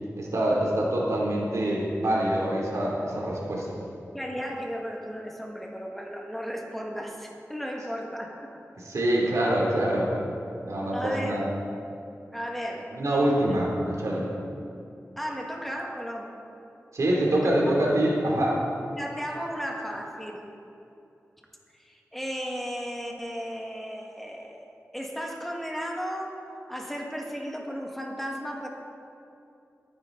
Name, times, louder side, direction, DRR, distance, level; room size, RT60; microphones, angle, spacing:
voice 1, 0.2-3.7 8.8-10.1 10.6-11.5 12.9-14.3 16.9-18.6, right 1 dB, 80° right, -3 dB, 3.1 m, -25 dB
voice 2, 4.1-8.5 10.9-11.5 12.3-12.9 13.5-13.6 15.2-16.4 17.3-17.5 19.0-20.5 21.8-24.7 24.9-28.7, equal, 5° left, 0 dB, 1.8 m, -35 dB
21.0 x 9.8 x 4.0 m, 2.7 s
wide cardioid pair, 65°, 5 cm